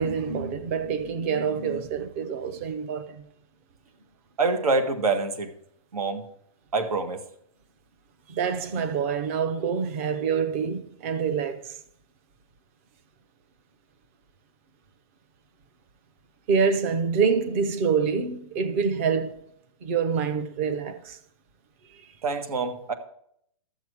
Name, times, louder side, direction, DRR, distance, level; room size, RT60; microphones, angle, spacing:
voice 1, 0.0-3.2 8.3-11.7 16.5-19.4 19.8-21.2, right 6 dB, 25° right, 0.6 m, -26 dB
voice 2, 4.4-5.5 5.9-6.2 6.7-7.2 22.2-22.9, right 3 dB, 85° right, 1.6 m, -25 dB
13.0 x 7.3 x 4.7 m
hypercardioid pair, 170°, 18 cm